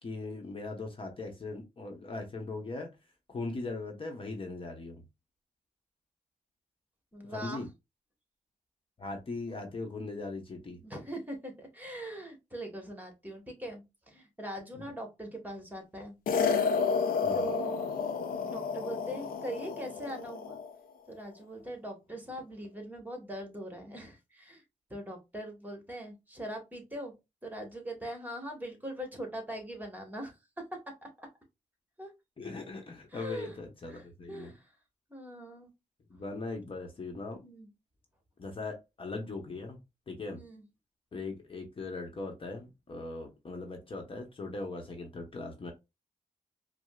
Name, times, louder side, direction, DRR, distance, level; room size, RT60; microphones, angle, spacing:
voice 1, 0.0-2.9 3.3-5.0 7.3-7.7 9.0-10.8 14.7-14.8 17.2-17.4 32.4-34.5 36.1-37.4 38.4-39.8 40.1-40.4 41.1-45.7, left 3 dB, 40° left, 3 dB, 0.9 m, -39 dB
voice 2, 7.1-7.6 10.7-16.2 17.3-17.9 18.5-20.6 21.1-24.6 24.9-27.1 27.4-30.3 31.0-31.3 32.0-32.1 33.1-33.6 33.9-34.0 34.3-34.6 35.1-35.7 37.4-37.7 40.3-40.6, right 1 dB, 10° right, 3 dB, 1.3 m, -41 dB
sound 1, 16.3-20.7, left 5 dB, 90° left, 0.5 m, -31 dB
4.8 x 2.0 x 2.3 m, 0.23 s
cardioid pair, 75°, 14 cm